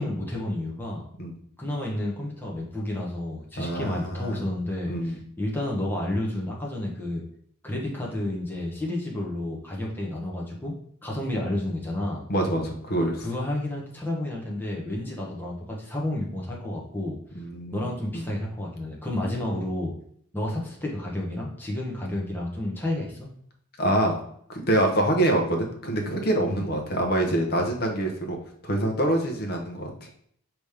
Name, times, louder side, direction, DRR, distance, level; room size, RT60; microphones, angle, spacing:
voice 1, 0.0-1.0 1.6-7.2 7.6-10.7 11.0-12.2 13.2-17.2 17.7-19.9 20.3-23.3 26.5-26.7, left 1 dB, 10° left, -3 dB, 0.8 m, -31 dB
voice 2, 3.6-4.4 4.9-5.2 12.3-13.2 17.3-17.9 18.1-18.2 23.8-24.1 24.5-28.4 28.6-29.9, right 1 dB, 45° left, 2 dB, 0.9 m, -25 dB
5.0 x 3.0 x 3.4 m, 0.66 s
head